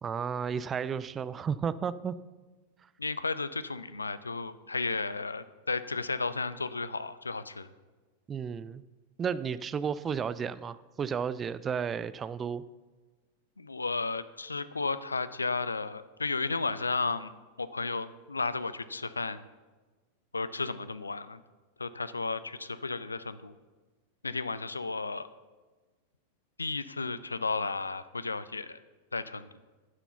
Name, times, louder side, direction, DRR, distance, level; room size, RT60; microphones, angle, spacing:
voice 1, 0.0-2.1 8.3-8.8 9.2-12.6, right 7 dB, 20° right, 17 dB, 0.3 m, -33 dB
voice 2, 3.0-7.7 13.6-17.3 17.6-19.5 20.3-21.4 21.8-23.5 24.2-25.3 26.6-28.8 29.1-29.5, left 3 dB, 80° left, 14 dB, 0.4 m, -33 dB
9.6 x 6.0 x 6.8 m, 1.3 s
figure-of-eight pair, 90°, 0 cm